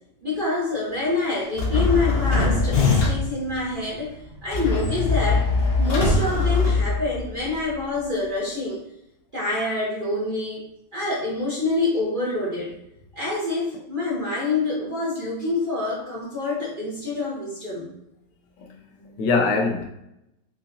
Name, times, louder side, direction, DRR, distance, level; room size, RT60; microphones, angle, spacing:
voice 1, 0.2-5.5 5.8-8.8 9.3-10.6 10.9-12.7 13.1-17.9, left 2 dB, 50° right, -6 dB, 0.6 m, -26 dB
sound 1, 1.6-3.4 4.5-7.4, left 3 dB, 45° left, 0.8 m, -21 dB
voice 2, 18.6-19.8, left 4 dB, 75° left, 2 dB, 1.2 m, -24 dB
3.9 x 3.1 x 2.6 m, 0.81 s
omnidirectional pair, 2.0 m